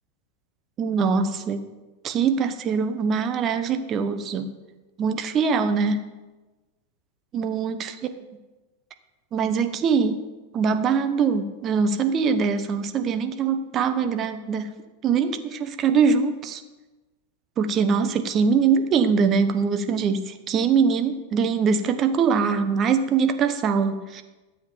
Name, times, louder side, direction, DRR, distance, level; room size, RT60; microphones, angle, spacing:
voice 1, 0.8-1.6 2.0-4.5 5.0-6.0 7.3-8.1 9.3-10.2 10.5-14.7 15.0-16.6 17.6-24.2, right 5 dB, 30° right, 8 dB, 1.0 m, -23 dB
13.0 x 7.6 x 5.3 m, 1.2 s
figure-of-eight pair, 90°, 0 cm